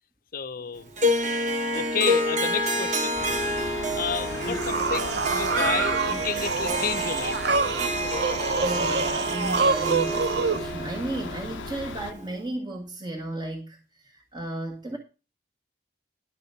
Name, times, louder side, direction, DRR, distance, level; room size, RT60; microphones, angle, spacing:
voice 1, 0.3-0.9 1.7-3.2 4.0-7.4, left 6 dB, 50° left, 0.7 m, -31 dB
Harp, 1.0-12.3, equal, 40° right, 1.3 m, -29 dB
sound 1, 3.2-12.1, left 5 dB, 85° left, 0.6 m, -38 dB
sound 2, 4.3-10.6, right 4 dB, 55° right, 0.6 m, -27 dB
voice 2, 8.2-13.8 14.0-15.0, right 2 dB, 20° right, 1.4 m, -34 dB
11.0 x 4.9 x 6.7 m
head